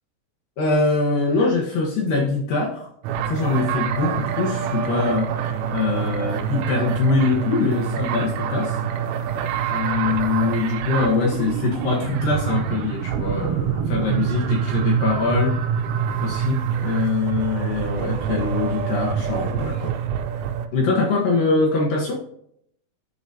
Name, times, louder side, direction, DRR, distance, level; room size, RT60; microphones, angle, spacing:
voice 1, 0.6-2.9 3.3-8.8 9.7-15.6 16.2-19.9 20.7-22.2, left 3 dB, 70° left, -2 dB, 2.1 m, -23 dB
sound 1, 3.0-20.7, right 8 dB, 90° right, 3.3 m, -25 dB
11.5 x 3.9 x 2.7 m, 0.69 s
omnidirectional pair, 5.6 m